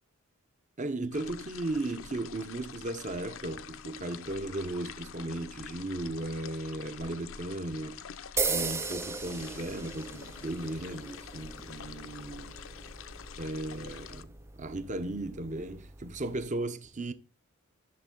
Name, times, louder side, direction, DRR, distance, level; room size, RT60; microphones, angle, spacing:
voice 1, 0.8-8.0 8.5-12.6 13.4-14.3 14.6-17.1, right 2 dB, 35° right, 0.8 m, -36 dB
sound 1, 1.1-14.2, left 7 dB, 65° left, 0.5 m, -46 dB
sound 2, 8.4-16.5, right 4 dB, 10° right, 0.4 m, -38 dB
11.0 x 6.5 x 3.8 m
head